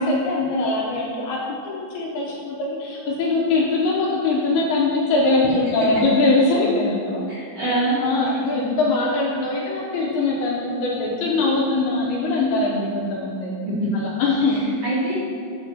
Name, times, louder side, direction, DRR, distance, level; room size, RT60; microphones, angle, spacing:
voice 1, 0.0-7.4 8.0-13.5 13.9-14.7, left 2 dB, 75° left, -3 dB, 2.5 m, -22 dB
voice 2, 7.3-8.0 13.6-13.9 14.5-15.1, right 2 dB, 50° right, -10 dB, 2.2 m, -25 dB
9.9 x 3.4 x 6.8 m, 2.5 s
omnidirectional pair, 5.2 m